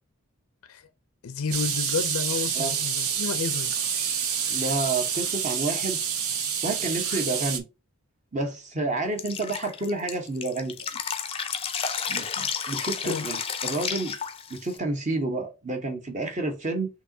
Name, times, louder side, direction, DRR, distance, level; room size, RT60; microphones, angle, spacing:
voice 1, 1.2-3.7 13.0-13.3, left 5 dB, 80° left, 0.5 m, -31 dB
sound 1, 1.5-7.6, right 7 dB, 80° right, 1.0 m, -28 dB
voice 2, 4.5-6.0 6.6-7.6 8.3-10.7 12.1-14.1 14.5-16.9, right 2 dB, 35° right, 1.0 m, -29 dB
Drip, 9.2-14.8, left 6 dB, 25° left, 0.5 m, -31 dB
6.4 x 2.9 x 2.7 m
head